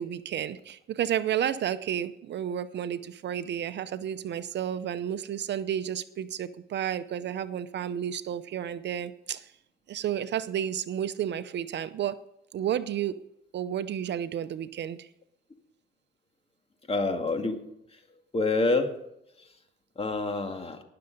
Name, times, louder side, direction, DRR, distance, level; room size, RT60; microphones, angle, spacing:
voice 1, 0.0-9.5 9.9-12.2 12.5-13.2 13.5-15.1, right 10 dB, 60° right, 13 dB, 0.7 m, -31 dB
voice 2, 16.9-17.6 18.3-18.9 19.4-19.5 20.0-20.8, left 3 dB, 30° left, 5 dB, 2.1 m, -27 dB
18.5 x 6.8 x 5.3 m, 0.78 s
cardioid pair, 90°, 20 cm